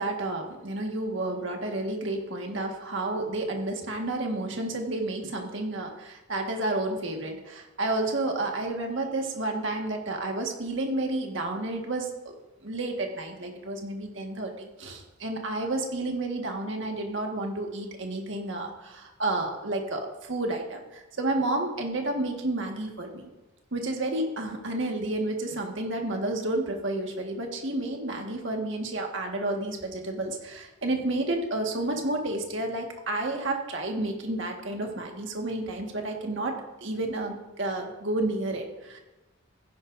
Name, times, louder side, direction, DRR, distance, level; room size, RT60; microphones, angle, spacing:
voice 1, 0.0-12.3 12.6-23.3 23.7-36.5 36.8-39.0, right 2 dB, 60° right, 2 dB, 1.6 m, -31 dB
15.5 x 10.5 x 2.6 m, 1.1 s
head